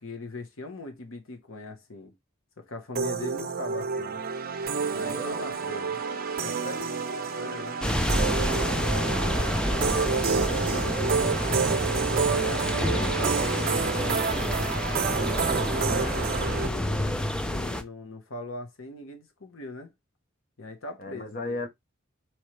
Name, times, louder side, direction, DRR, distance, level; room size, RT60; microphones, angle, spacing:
voice 1, 0.0-2.1 2.6-4.2 4.9-6.0 7.4-7.8 9.7-11.6 12.3-14.8 15.6-19.9 20.6-21.5, left 2 dB, 85° left, 1.1 m, -40 dB
sound 1, 3.0-16.7, right 5 dB, 50° right, 0.6 m, -29 dB
voice 2, 4.7-5.4 5.6-5.8 6.3-6.9 8.6-9.2 21.0-21.7, left 1 dB, 45° left, 0.9 m, -37 dB
sound 2, 7.8-17.8, equal, 5° left, 0.4 m, -28 dB
4.4 x 3.2 x 3.2 m
head